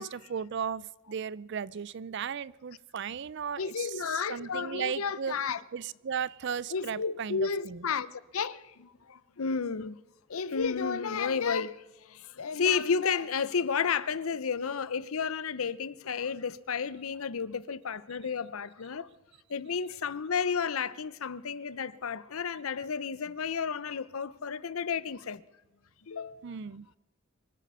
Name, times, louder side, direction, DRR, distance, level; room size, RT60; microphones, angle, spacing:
voice 1, 0.0-5.4 5.7-7.8 26.4-26.9, right 7 dB, 55° right, 0.4 m, -36 dB
voice 2, 3.6-5.6 6.7-10.0 10.3-19.1 19.5-25.4 26.1-26.5, left 6 dB, 75° left, 0.7 m, -32 dB
25.0 x 9.3 x 5.5 m
head